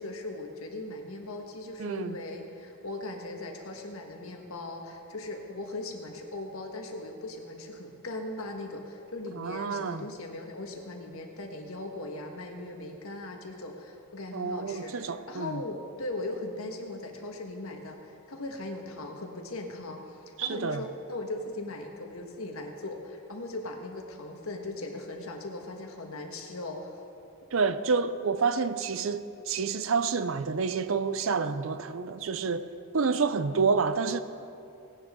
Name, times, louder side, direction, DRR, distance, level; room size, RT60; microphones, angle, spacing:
voice 1, 0.0-27.0, left 2 dB, 70° left, 1.5 m, -39 dB
voice 2, 1.8-2.2 9.3-10.1 14.3-15.6 20.4-20.8 27.5-34.2, right 5 dB, 65° right, 0.5 m, -29 dB
18.0 x 10.0 x 3.7 m
head